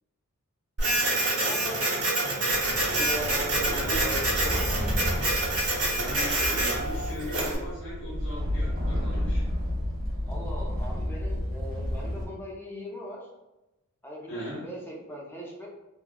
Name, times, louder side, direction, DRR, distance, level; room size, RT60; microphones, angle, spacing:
Printer, 0.8-7.6, right 2 dB, 75° right, 1.0 m, -27 dB
voice 1, 1.3-2.5 2.9-4.8 10.3-13.3 14.0-15.7, equal, 10° left, -4 dB, 0.6 m, -39 dB
sound 1, 2.5-12.2, left 1 dB, 45° right, 0.7 m, -31 dB
voice 2, 3.5-4.1 5.9-9.4 14.3-14.7, equal, 60° left, -6 dB, 1.3 m, -38 dB
3.2 x 2.3 x 2.2 m, 0.98 s
head